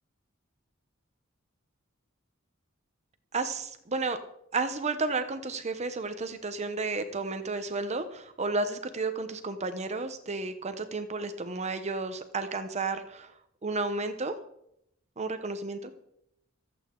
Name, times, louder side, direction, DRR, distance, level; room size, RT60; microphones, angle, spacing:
voice 1, 3.3-4.2 4.5-13.3 13.6-14.3 15.2-15.9, right 3 dB, 35° right, 9 dB, 0.9 m, -32 dB
26.0 x 8.7 x 3.8 m, 0.76 s
head